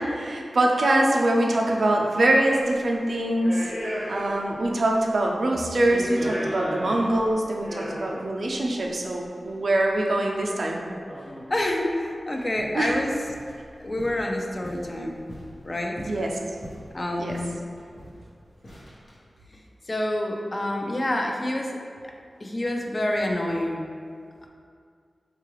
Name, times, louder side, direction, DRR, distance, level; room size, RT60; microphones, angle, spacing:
voice 1, 0.0-3.7 4.1-10.8 12.7-13.0 16.1-16.4 17.2-17.4, right 1 dB, 70° right, 0 dB, 0.4 m, -23 dB
sound 1, 2.6-2.8 3.3-4.7 5.0-5.1 5.7-8.3 9.3-9.4 11.1-11.5 12.0-12.1 12.4-12.8 13.1-13.6 14.0-14.2 14.6-15.6 16.0-16.9 17.3-17.5 17.8-18.2 18.6-19.1, equal, 70° left, 0.9 m, -35 dB
voice 2, 11.5-13.1 13.8-15.2 15.6-16.0 16.9-17.6 19.5-19.6 19.9-21.8 22.4-23.9, left 1 dB, 40° left, 1 dB, 0.4 m, -27 dB
3.8 x 2.4 x 3.0 m, 2.2 s
cardioid pair, 45°, 0 cm